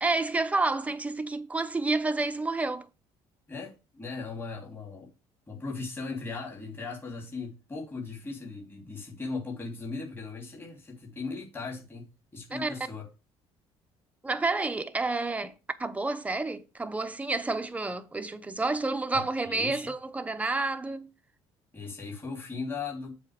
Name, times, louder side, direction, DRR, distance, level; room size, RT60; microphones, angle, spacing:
voice 1, 0.0-2.9 12.5-12.7 14.2-15.5 15.8-21.1, right 3 dB, 10° right, 0.9 m, -29 dB
voice 2, 3.5-5.1 5.5-12.1 12.3-13.0 19.1-19.9 21.7-23.1, left 4 dB, 20° left, 3.2 m, -38 dB
7.5 x 4.2 x 6.6 m
cardioid pair, 115°, 11 cm